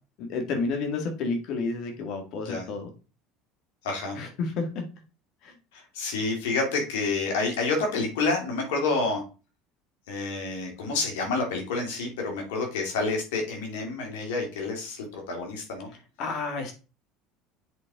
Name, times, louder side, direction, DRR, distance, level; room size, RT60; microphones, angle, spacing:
voice 1, 0.2-2.9 4.1-4.8 5.4-5.6 16.2-16.7, left 4 dB, 60° left, 4 dB, 2.0 m, -30 dB
voice 2, 3.8-4.2 5.7-9.2 10.1-15.9, left 3 dB, 85° left, 2 dB, 2.6 m, -29 dB
7.8 x 4.2 x 3.7 m, 0.32 s
supercardioid pair, 95°, 0 cm